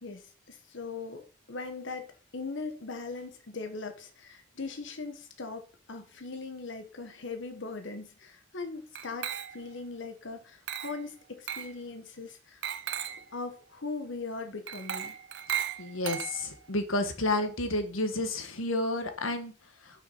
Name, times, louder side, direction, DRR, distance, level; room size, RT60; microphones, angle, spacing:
voice 1, 0.0-12.6 13.0-15.2, left 3 dB, 65° left, 7 dB, 1.1 m, -40 dB
Glass, 9.0-9.8 10.7-11.1 11.5-11.8 12.6-13.3 14.7-16.7, right 9 dB, 60° right, 0.7 m, -36 dB
voice 2, 15.8-19.5, left 2 dB, 85° left, 7 dB, 1.5 m, -30 dB
7.1 x 6.0 x 5.4 m, 0.36 s
head